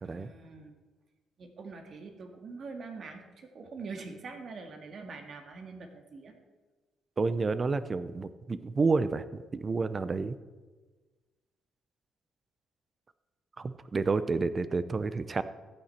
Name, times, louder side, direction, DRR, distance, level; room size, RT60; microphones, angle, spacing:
voice 1, 0.0-0.8 1.4-6.3, right 4 dB, 55° right, 4 dB, 1.9 m, -44 dB
voice 2, 7.2-10.4 13.6-15.4, right 4 dB, 35° right, 13 dB, 0.7 m, -30 dB
14.5 x 8.8 x 4.4 m, 1.3 s
cardioid pair, 90°, 0 cm